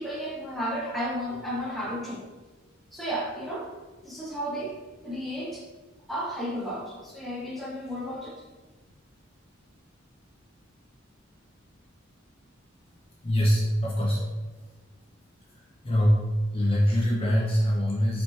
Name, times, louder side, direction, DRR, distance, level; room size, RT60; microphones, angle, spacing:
voice 1, 0.0-2.2 2.9-3.7 4.0-4.8 5.0-5.6 6.1-8.4, equal, ahead, -5 dB, 0.9 m, -33 dB
voice 2, 13.2-14.2 15.8-18.2, equal, 30° left, -4 dB, 0.7 m, -23 dB
4.1 x 3.2 x 3.1 m, 1.3 s
head